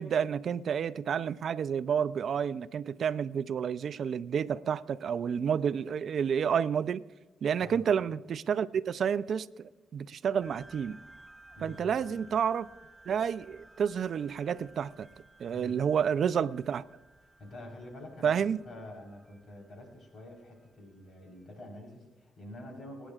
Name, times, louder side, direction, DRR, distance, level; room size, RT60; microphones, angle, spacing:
voice 1, 0.0-7.0 7.4-11.0 11.6-12.7 13.1-15.1 15.4-16.8 18.2-18.6, right 7 dB, 65° right, 0.4 m, -30 dB
sound 1, 10.4-21.3, right 2 dB, 10° right, 4.7 m, -57 dB
voice 2, 11.5-12.3 15.5-15.8 17.4-23.1, left 1 dB, 60° left, 4.2 m, -47 dB
27.0 x 10.0 x 2.4 m
supercardioid pair, 45°, 0 cm